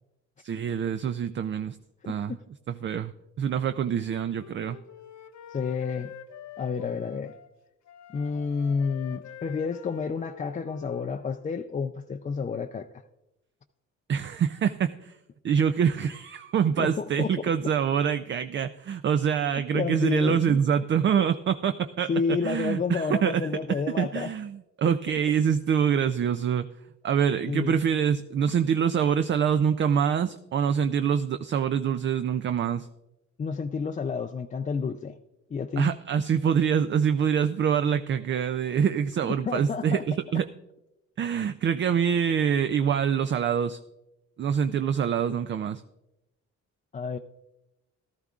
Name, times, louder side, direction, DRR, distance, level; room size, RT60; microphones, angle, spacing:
voice 1, 0.4-1.8 2.1-2.4 2.7-4.8 14.1-15.1 15.4-26.7 27.0-32.9 35.8-40.5 41.2-43.8 44.4-45.8, right 8 dB, 40° right, 0.4 m, -25 dB
Wind instrument woodwind instrument, 3.9-7.5 7.8-11.5, left 9 dB, 70° left, 0.8 m, -47 dB
voice 2, 5.5-6.1 6.6-7.3 8.1-12.9 16.8-17.4 19.7-20.6 22.1-24.3 27.5-27.8 33.4-35.2 35.5-35.9 39.2-40.0 46.9-47.2, left 5 dB, 25° left, 0.4 m, -30 dB
14.5 x 13.0 x 2.4 m
cardioid pair, 90°, 30 cm